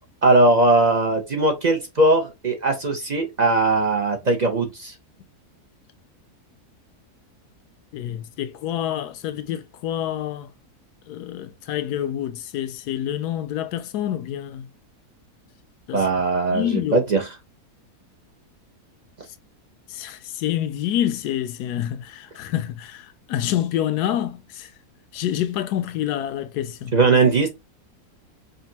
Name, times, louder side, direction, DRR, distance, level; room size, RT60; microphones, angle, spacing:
voice 1, 0.2-4.9 15.9-17.2 26.9-27.5, right 2 dB, 45° right, 0.6 m, -19 dB
voice 2, 7.9-10.5 11.1-14.7 15.9-16.0 16.5-17.0 19.9-23.0 23.3-24.7 25.1-27.0, left 11 dB, 90° left, 1.2 m, -27 dB
5.2 x 2.5 x 2.7 m
omnidirectional pair, 1.6 m